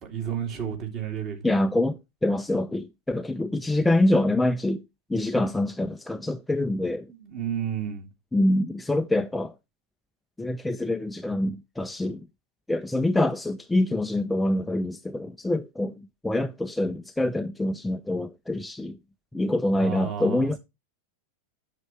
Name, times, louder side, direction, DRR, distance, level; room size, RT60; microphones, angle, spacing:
voice 1, 0.0-1.6 7.1-8.1 19.8-20.6, right 8 dB, 35° right, 2.6 m, -32 dB
voice 2, 1.4-4.8 5.1-7.1 8.3-9.5 10.4-12.3 12.7-19.0 19.3-20.6, left 1 dB, 5° left, 0.5 m, -25 dB
7.9 x 7.4 x 3.2 m
figure-of-eight pair, 90°, 0 cm